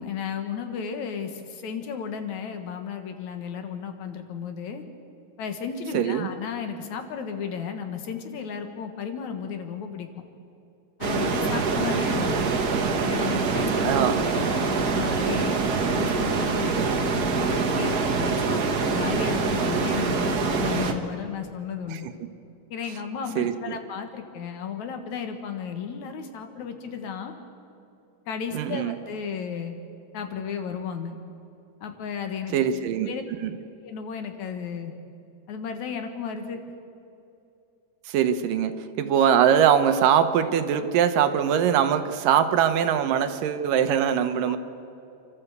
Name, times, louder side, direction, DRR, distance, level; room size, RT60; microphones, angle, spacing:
voice 1, 0.0-4.8 5.4-10.1 11.0-12.6 12.9-14.0 14.3-15.6 15.8-22.1 22.7-27.3 28.3-29.7 30.1-31.2 31.8-32.5 33.1-33.2 33.8-35.0 35.5-36.6 44.5-44.6, left 7 dB, 65° left, 6 dB, 2.6 m, -34 dB
voice 2, 5.9-6.3 13.8-14.2 21.9-22.0 23.4-23.7 28.5-29.0 32.5-33.1 33.4-33.5 38.1-44.6, right 9 dB, 90° right, 9 dB, 2.7 m, -22 dB
sound 1, 11.0-20.9, right 4 dB, 65° right, 0.9 m, -25 dB
28.5 x 13.0 x 8.1 m, 2.7 s
omnidirectional pair, 3.7 m